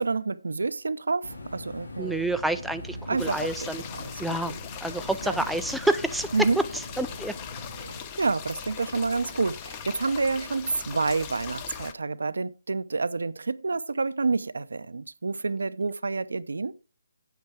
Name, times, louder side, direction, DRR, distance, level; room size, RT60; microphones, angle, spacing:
voice 1, 0.0-2.3 3.1-4.6 5.2-5.5 6.3-6.6 7.8-16.8, right 3 dB, 80° right, 0.6 m, -29 dB
sound 1, 1.2-8.0, left 2 dB, 90° left, 3.2 m, -42 dB
voice 2, 2.0-3.8 4.2-4.5 4.8-6.5 7.0-7.3, right 1 dB, ahead, 0.4 m, -28 dB
sound 2, 3.2-11.9, left 8 dB, 25° left, 0.8 m, -40 dB
8.2 x 7.8 x 4.6 m
hypercardioid pair, 160°, 0 cm